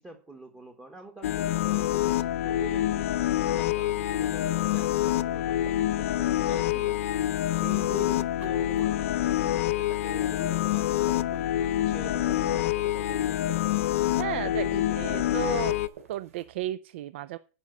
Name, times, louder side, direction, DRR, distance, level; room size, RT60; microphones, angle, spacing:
voice 1, 0.0-3.1 3.5-7.0 7.5-13.6 14.4-15.6, right 2 dB, 10° right, 3 dB, 1.0 m, -45 dB
sound 1, 1.2-15.9, left 13 dB, 70° left, 0.6 m, -26 dB
sound 2, 3.7-16.6, right 7 dB, 85° right, 3.0 m, -53 dB
voice 2, 14.2-14.6 15.0-15.7 16.1-17.4, right 14 dB, 50° right, 16 dB, 0.4 m, -33 dB
9.8 x 5.3 x 7.8 m, 0.38 s
supercardioid pair, 165°, 8 cm